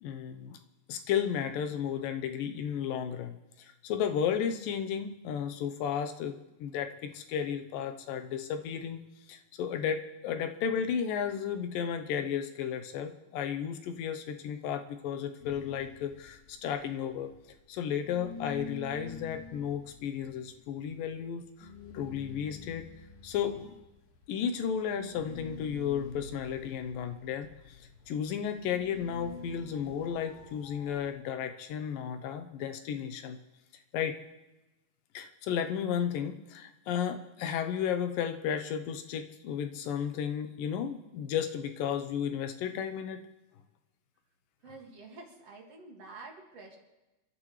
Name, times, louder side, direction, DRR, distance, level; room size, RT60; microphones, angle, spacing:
voice 1, 0.0-0.6 0.9-9.0 9.3-17.3 17.7-22.9 23.2-23.8 24.3-27.8 28.1-33.4 33.9-34.2 35.1-43.3, left 8 dB, 90° left, 8 dB, 2.7 m, -33 dB
sound 1, 15.4-17.8 18.0-31.1, left 5 dB, 70° left, 3.2 m, -47 dB
voice 2, 44.6-46.8, right 3 dB, 50° right, -1 dB, 3.1 m, -48 dB
27.0 x 13.0 x 3.2 m, 1.0 s
omnidirectional pair, 3.8 m